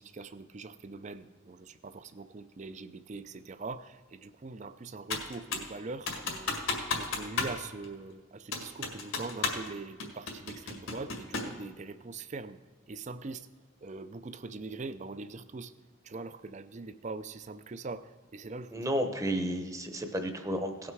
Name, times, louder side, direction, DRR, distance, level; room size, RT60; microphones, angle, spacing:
voice 1, 0.0-6.5 6.9-12.6 12.9-13.5 13.8-15.7 16.0-18.9, right 3 dB, 35° right, 13 dB, 0.4 m, -42 dB
Computer keyboard, 5.1-5.7 6.1-7.6 7.8-7.9 8.5-9.7 10.0-11.6, left 4 dB, 80° left, 1.9 m, -33 dB
voice 2, 18.7-20.9, equal, 15° right, 6 dB, 0.9 m, -32 dB
17.0 x 5.9 x 4.7 m, 1.4 s
head